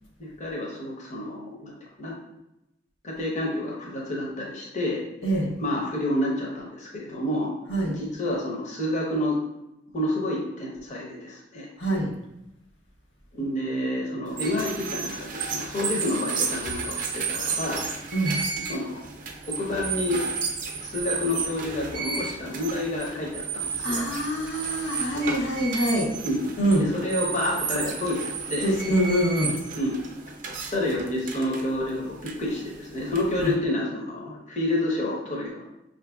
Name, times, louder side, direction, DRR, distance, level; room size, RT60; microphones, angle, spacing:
voice 1, 0.2-2.1 3.0-5.0 5.6-7.5 7.9-9.4 9.9-11.7 13.3-17.8 18.6-19.0 19.5-20.2 20.8-24.0 26.2-26.5 26.8-28.7 29.7-30.0 30.7-35.7, left 1 dB, 40° left, -3 dB, 0.8 m, -29 dB
voice 2, 5.2-5.5 7.7-8.0 11.8-12.1 18.1-18.4 23.8-26.1 26.6-26.9 28.6-29.5 33.4-33.5, right 1 dB, 80° left, -1 dB, 0.8 m, -24 dB
sound 1, 14.3-33.5, right 5 dB, 45° right, 0.5 m, -33 dB
5.7 x 2.6 x 2.3 m, 0.88 s
head